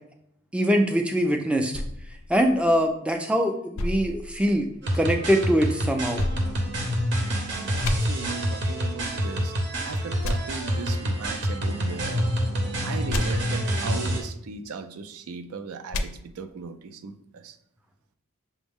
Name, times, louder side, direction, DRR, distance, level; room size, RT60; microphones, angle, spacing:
voice 1, 0.5-1.7 2.3-4.7 4.9-6.2, equal, 5° right, 4 dB, 0.3 m, -23 dB
sound 1, 1.7-3.2 3.7-5.0 6.2-7.3 7.8-7.9 10.2-10.3 13.1-13.2 15.9-16.0, left 2 dB, 70° left, 0.4 m, -32 dB
sound 2, 4.8-14.2, equal, 55° right, 0.8 m, -27 dB
voice 2, 8.1-9.5 9.8-12.3 12.8-17.6, right 4 dB, 80° right, 9 dB, 0.4 m, -37 dB
6.0 x 2.1 x 3.5 m, 0.73 s
head